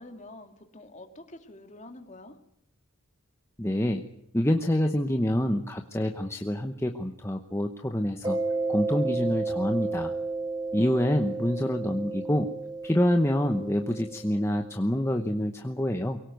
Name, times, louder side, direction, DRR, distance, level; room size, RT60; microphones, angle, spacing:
voice 1, 0.0-2.4 10.8-11.3, left 2 dB, 35° left, 5 dB, 2.4 m, -47 dB
voice 2, 3.6-4.0 4.3-8.4 8.7-10.1 10.7-12.5 12.8-16.2, left 1 dB, 10° left, 4 dB, 0.9 m, -26 dB
Mallet percussion, 8.2-14.6, right 3 dB, 20° right, 1.9 m, -32 dB
23.0 x 18.0 x 9.3 m, 0.80 s
head